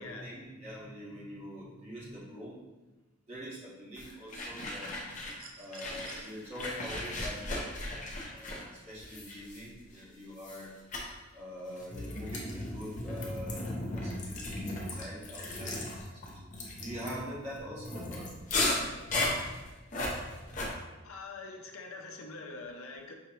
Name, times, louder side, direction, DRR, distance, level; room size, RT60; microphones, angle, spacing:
voice 1, 0.0-2.6 3.3-4.9 5.6-7.7 8.3-10.7 11.3-15.8 16.3-16.4 16.8-18.3, equal, 30° right, -8 dB, 1.4 m, -44 dB
sound 1, 4.0-5.4 5.7-10.0 10.4-10.6 10.9-11.1 11.8-20.7, left 2 dB, 35° left, 0.7 m, -36 dB
sound 2, 5.2-6.3 7.8-7.9, right 5 dB, 70° right, 0.7 m, -52 dB
voice 2, 21.0-23.1, left 3 dB, 80° left, 3 dB, 0.6 m, -44 dB
5.5 x 3.1 x 2.9 m, 1.1 s
head